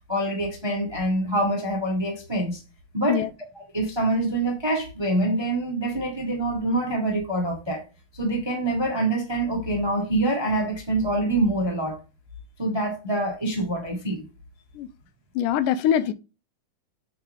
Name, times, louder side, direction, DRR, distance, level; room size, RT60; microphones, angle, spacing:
voice 1, 0.1-2.6 2.9-3.2 3.7-7.8 8.1-12.0 12.6-14.3, right 1 dB, 15° right, 0.8 m, -25 dB
voice 2, 15.4-16.1, left 10 dB, 90° left, 2.2 m, -23 dB
8.5 x 4.3 x 3.7 m
omnidirectional pair, 3.7 m